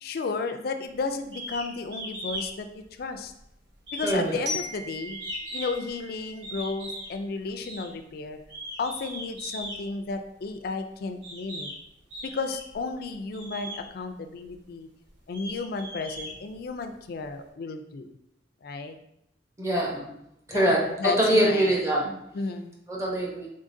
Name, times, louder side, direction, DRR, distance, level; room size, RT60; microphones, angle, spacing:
voice 1, 0.0-3.3 3.9-5.2 5.5-8.4 8.8-11.7 12.2-14.9 15.3-18.1 18.6-19.0 20.5-21.7 22.0-22.8, left 3 dB, 55° left, 7 dB, 0.4 m, -33 dB
sound 1, 1.3-1.7 1.9-2.5 2.8-3.4 3.8-5.9 6.4-7.1 7.6-7.9 8.4-9.8 10.6-10.7 11.2-11.8 12.1-12.8 13.3-13.8 14.4-14.5 15.1-16.9, equal, 85° right, 1.4 m, -38 dB
voice 2, 4.0-4.4 19.6-20.0 20.5-22.0 22.9-23.5, right 1 dB, 15° right, -3 dB, 0.8 m, -24 dB
Glockenspiel, 4.5-7.3, left 2 dB, 65° right, 0.9 m, -38 dB
3.8 x 3.7 x 2.6 m, 0.80 s
head